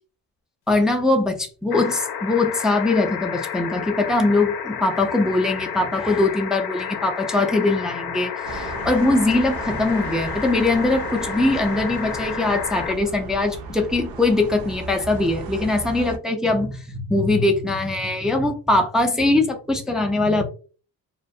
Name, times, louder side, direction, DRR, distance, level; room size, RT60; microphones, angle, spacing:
voice 1, 0.7-20.4, left 2 dB, ahead, 0.3 m, -21 dB
sound 1, 1.7-12.9 14.4-14.5, left 8 dB, 75° left, 0.6 m, -31 dB
sound 2, 8.4-16.2, right 4 dB, 65° right, 0.6 m, -35 dB
2.3 x 2.2 x 2.6 m
cardioid pair, 90°, 39 cm